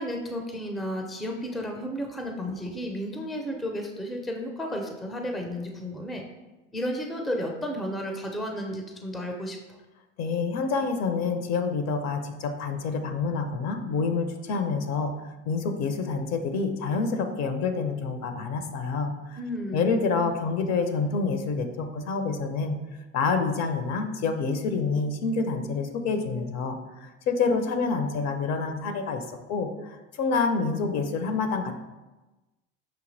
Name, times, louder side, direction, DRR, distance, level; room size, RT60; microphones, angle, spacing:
voice 1, 0.0-6.3 6.7-9.6 19.4-19.9, equal, ahead, 2 dB, 0.4 m, -33 dB
voice 2, 10.2-15.1 15.5-19.4 19.7-22.8 23.1-31.7, left 4 dB, 45° left, 7 dB, 0.6 m, -27 dB
5.7 x 2.7 x 2.6 m, 1.1 s
hypercardioid pair, 70°, 39 cm